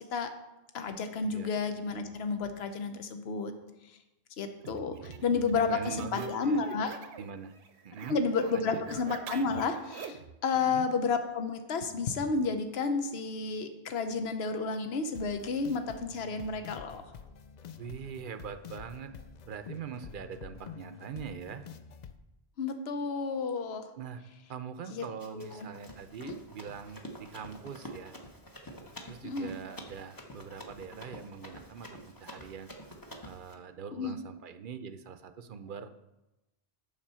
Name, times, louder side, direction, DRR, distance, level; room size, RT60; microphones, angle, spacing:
voice 1, 0.7-3.5 4.4-7.0 8.1-17.0 22.6-23.9 24.9-25.1 25.3-25.7 26.2-26.3 29.2-29.5 33.9-34.2, left 4 dB, 80° left, 8 dB, 1.0 m, -31 dB
sound 1, 4.6-7.3 7.6-10.3, right 5 dB, 85° right, 1.0 m, -44 dB
voice 2, 4.9-6.6 7.2-7.5 7.8-8.2 8.5-8.8 10.5-10.9 17.8-19.1 19.5-21.6 24.0-24.2 24.5-28.1 29.0-32.7 33.2-35.9, right 7 dB, 60° right, 10 dB, 0.7 m, -43 dB
sound 2, 15.1-22.2, left 7 dB, 55° left, 0.5 m, -48 dB
Run, 25.2-33.5, equal, 20° left, 0.9 m, -48 dB
7.3 x 6.8 x 5.5 m, 0.97 s
omnidirectional pair, 1.0 m